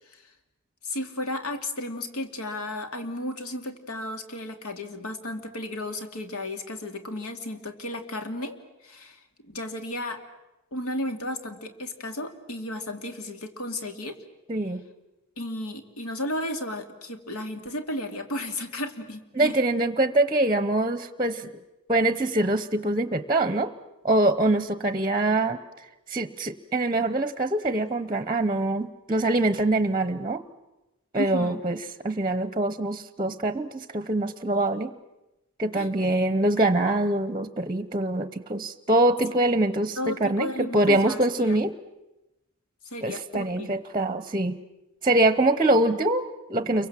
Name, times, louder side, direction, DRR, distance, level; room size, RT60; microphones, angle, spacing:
voice 1, 0.8-10.2 10.7-14.2 15.4-19.5 31.1-31.6 35.7-35.9 40.0-41.6 42.8-43.8, left 1 dB, 75° left, 7 dB, 2.5 m, -34 dB
voice 2, 14.5-14.8 19.3-21.5 21.9-23.7 24.0-25.6 26.1-30.4 31.1-31.8 32.0-34.9 35.6-41.7 43.0-44.6 45.0-46.9, right 2 dB, 20° right, 12 dB, 0.9 m, -24 dB
30.0 x 23.5 x 7.5 m, 0.97 s
head